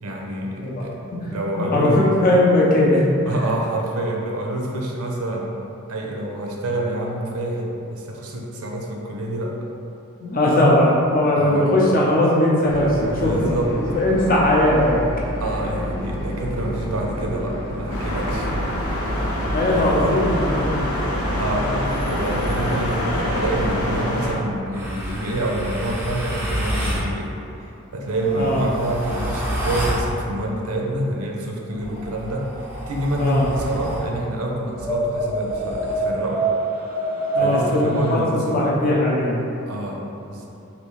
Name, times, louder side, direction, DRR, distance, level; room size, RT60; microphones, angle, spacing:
voice 1, 0.0-1.0 1.2-2.0 3.3-5.5 5.9-9.6 11.4-11.6 13.1-13.8 15.4-18.5 19.7-20.2 21.4-21.8 22.1-27.3 27.9-32.5 32.9-36.5 37.4-38.7 39.7-40.5, right 1 dB, 85° right, -1 dB, 0.5 m, -27 dB
voice 2, 0.6-3.0 3.3-3.4 10.2-15.0 19.5-21.0 28.3-28.7 33.2-33.5 37.3-39.5, left 1 dB, 40° left, -4 dB, 0.5 m, -19 dB
sound 1, 12.7-23.8, equal, 60° left, 0.9 m, -29 dB
sound 2, 17.9-24.3, left 1 dB, 85° left, 0.6 m, -26 dB
sound 3, 24.7-27.1 28.0-30.1 31.7-34.1 34.8-38.2, right 1 dB, 10° right, 0.4 m, -27 dB
3.4 x 2.6 x 3.1 m, 2.8 s
head